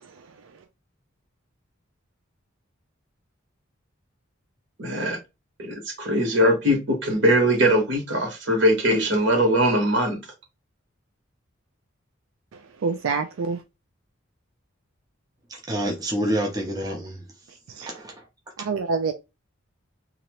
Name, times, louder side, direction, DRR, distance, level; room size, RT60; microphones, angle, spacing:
voice 1, 4.8-5.2 5.6-10.2, equal, 60° right, 1.4 m, -21 dB
voice 2, 12.8-13.6 17.8-17.9 18.7-19.1, right 4 dB, 85° right, 0.4 m, -25 dB
voice 3, 15.5-17.2 17.8-18.3 18.6-18.7, right 1 dB, 20° right, 0.6 m, -28 dB
2.9 x 2.5 x 3.0 m
head